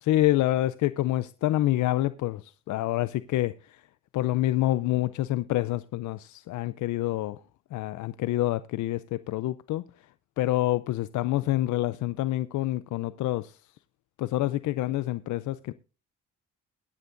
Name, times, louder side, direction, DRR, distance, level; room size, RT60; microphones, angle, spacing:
voice 1, 0.0-3.8 4.1-7.4 7.7-9.8 10.4-13.6 14.2-15.7, left 15 dB, 75° left, 0.5 m, -27 dB
22.0 x 9.6 x 2.6 m
cardioid pair, 90°, 30 cm